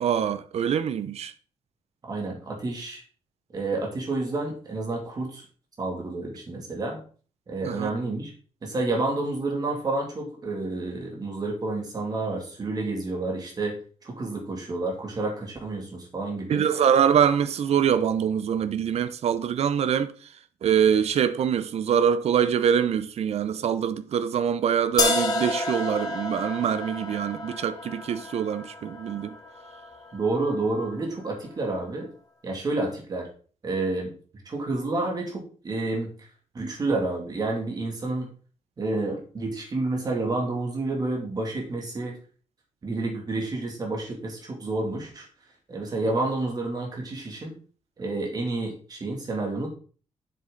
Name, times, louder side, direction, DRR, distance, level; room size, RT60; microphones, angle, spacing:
voice 1, 0.0-1.3 7.6-7.9 16.5-20.1 20.6-29.3, right 8 dB, 60° right, 0.7 m, -24 dB
voice 2, 2.0-3.0 3.5-5.4 5.8-7.0 7.5-8.3 8.6-13.8 14.0-16.7 30.1-32.1 32.4-33.3 33.6-34.1 34.5-36.1 36.5-38.3 38.8-42.1 42.8-45.3 45.7-47.5 48.0-49.7, right 2 dB, 30° right, 2.5 m, -29 dB
sound 1, 25.0-30.9, left 2 dB, 30° left, 1.6 m, -31 dB
7.6 x 6.7 x 3.9 m
wide cardioid pair, 170°, 12 cm